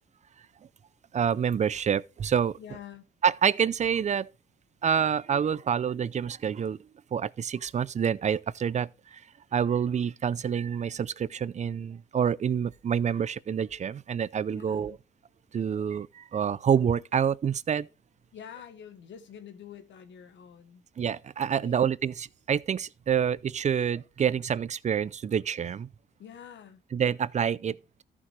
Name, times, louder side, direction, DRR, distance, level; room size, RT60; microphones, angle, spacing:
voice 1, 1.1-2.6 3.2-4.3 4.8-6.8 7.1-9.2 9.5-15.0 15.5-17.9 21.0-25.9 26.9-28.0, right 8 dB, 35° right, 0.5 m, -27 dB
voice 2, 2.6-3.1 14.5-15.0 18.3-20.8 21.6-21.8 26.2-26.8, left 8 dB, 65° left, 1.1 m, -47 dB
14.0 x 6.0 x 3.2 m
cardioid pair, 90°, 20 cm